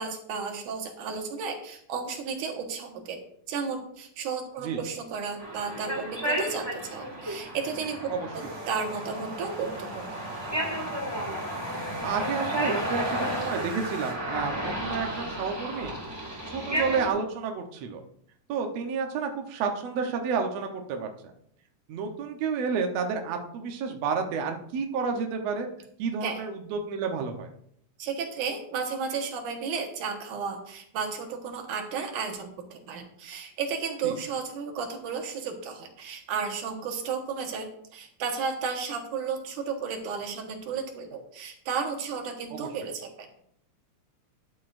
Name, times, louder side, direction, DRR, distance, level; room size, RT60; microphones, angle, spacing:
voice 1, 0.0-3.2 3.5-10.2 26.2-26.4 28.0-37.7 37.9-43.3, right 5 dB, 85° right, 3 dB, 2.9 m, -33 dB
sound 1, 5.4-17.1, equal, 10° right, 1.8 m, -33 dB
sound 2, 8.3-14.1, right 1 dB, 40° right, 3.4 m, -45 dB
voice 2, 12.0-15.9 16.5-18.0 18.5-21.3 21.9-25.7 26.0-27.5 34.0-34.1 42.5-42.7, right 5 dB, 65° right, 3 dB, 2.0 m, -30 dB
13.0 x 9.8 x 2.6 m, 0.67 s
omnidirectional pair, 3.5 m